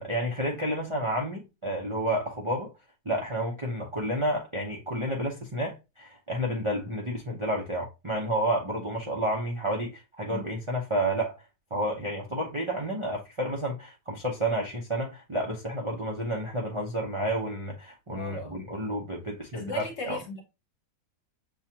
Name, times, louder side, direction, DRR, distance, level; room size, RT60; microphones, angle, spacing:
voice 1, 0.0-2.7 3.0-11.4 11.7-20.2, right 1 dB, 30° right, 0.5 m, -30 dB
voice 2, 18.1-18.6 19.5-20.4, left 4 dB, 50° left, 1.2 m, -37 dB
7.0 x 2.4 x 2.8 m
omnidirectional pair, 1.6 m